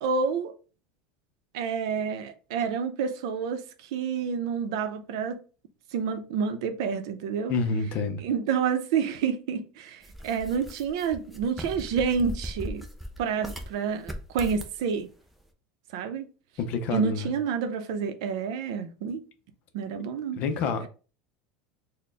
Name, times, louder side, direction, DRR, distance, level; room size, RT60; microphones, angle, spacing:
voice 1, 0.0-0.5 1.5-5.4 5.9-7.5 8.2-12.9 13.2-15.1 15.9-16.3 16.9-19.2 19.7-20.4, right 6 dB, 70° right, 0.6 m, -29 dB
voice 2, 7.5-8.2 16.6-17.3 20.3-20.9, left 4 dB, 45° left, 0.6 m, -28 dB
sound 1, 10.0-13.7 14.0-14.8, equal, 5° right, 0.4 m, -38 dB
4.1 x 2.2 x 3.3 m
cardioid pair, 170°, 3 cm